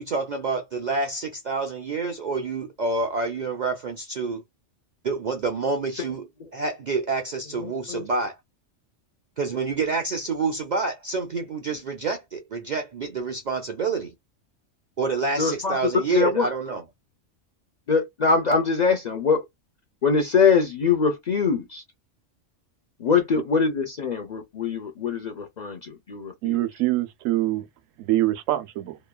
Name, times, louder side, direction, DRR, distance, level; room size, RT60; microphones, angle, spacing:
voice 1, 0.0-4.4 5.0-8.4 9.4-14.1 15.0-16.8, right 4 dB, 60° right, 0.4 m, -28 dB
voice 2, 15.4-15.8 16.1-16.5 17.9-19.4 20.0-21.8 23.0-26.6, left 5 dB, 55° left, 0.5 m, -23 dB
voice 3, 26.4-27.6 28.0-29.0, right 16 dB, 90° right, 1.0 m, -24 dB
3.0 x 2.2 x 2.2 m
omnidirectional pair, 1.3 m